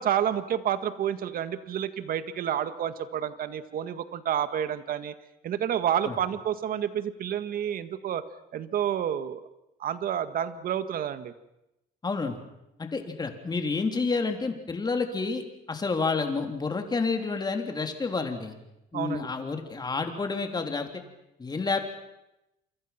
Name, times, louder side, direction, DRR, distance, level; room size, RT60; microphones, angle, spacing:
voice 1, 0.0-5.1 5.4-8.3 8.5-9.4 9.8-11.3 18.9-19.3, right 9 dB, 60° right, 11 dB, 1.8 m, -29 dB
voice 2, 12.0-12.4 12.9-18.6 18.9-20.9 21.4-21.8, left 4 dB, 25° left, 5 dB, 3.5 m, -29 dB
28.5 x 24.5 x 6.0 m, 0.88 s
cardioid pair, 110°, 17 cm